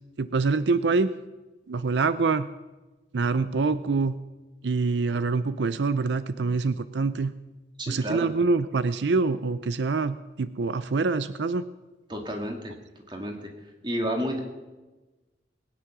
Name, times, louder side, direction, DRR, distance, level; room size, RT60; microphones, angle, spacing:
voice 1, 0.2-1.1 1.7-2.5 3.1-4.2 4.6-7.3 7.9-11.6, right 4 dB, 80° right, 14 dB, 0.5 m, -25 dB
voice 2, 7.8-8.3 12.1-12.7 13.1-13.5 13.8-14.4, equal, 25° right, 2 dB, 2.3 m, -31 dB
21.0 x 9.6 x 6.1 m, 1.2 s
head